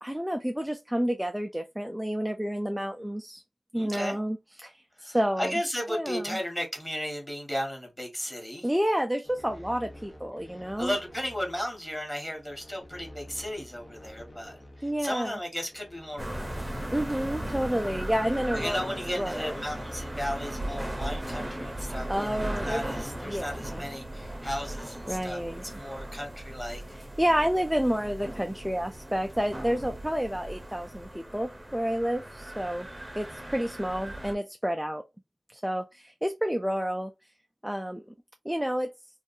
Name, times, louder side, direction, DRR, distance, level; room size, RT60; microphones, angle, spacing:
voice 1, 0.0-3.4 3.7-5.5 5.9-6.4 8.6-10.9 14.8-15.3 16.9-18.8 19.2-19.6 22.1-22.8 23.2-23.9 25.1-25.6 26.9-32.9 33.2-35.0 35.5-37.1 37.6-38.0 38.4-38.9, equal, 5° right, 0.3 m, -30 dB
voice 2, 3.7-4.2 5.0-8.7 10.4-16.8 18.5-25.4 25.8-26.8, equal, 10° left, 1.4 m, -35 dB
sound 1, 9.2-23.7, left 1 dB, 35° left, 0.7 m, -49 dB
sound 2, 16.2-34.3, right 1 dB, 20° right, 0.7 m, -37 dB
2.5 x 2.3 x 2.6 m
wide cardioid pair, 60°, 0 cm